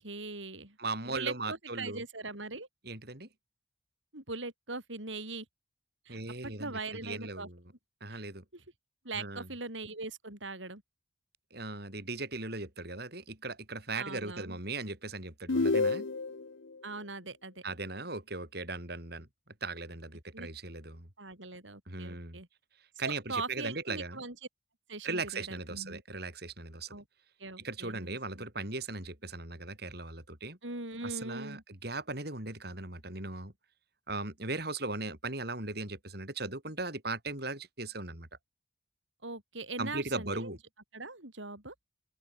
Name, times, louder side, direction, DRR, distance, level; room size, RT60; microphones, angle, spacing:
voice 1, 0.0-0.8 1.0-2.7 4.1-5.5 6.1-6.2 6.4-7.5 8.1-8.2 8.5-8.6 9.0-10.8 13.9-14.6 16.8-17.6 20.3-20.5 21.2-22.5 23.0-24.4 24.9-26.0 26.9-27.0 27.4-28.4 30.6-31.6 39.2-40.6 40.9-41.7, right 3 dB, 80° right, 7.7 m, -41 dB
voice 2, 0.8-2.0 2.9-3.3 6.1-6.7 7.0-7.6 8.0-8.4 9.2-9.5 11.5-16.1 17.6-19.3 19.6-21.1 21.9-22.4 23.0-24.2 25.0-27.0 27.6-30.6 31.0-33.5 34.1-38.3 39.8-40.6, right 3 dB, 55° right, 5.7 m, -38 dB
sound 1, 15.5-16.5, left 3 dB, 85° left, 0.9 m, -28 dB
open air
head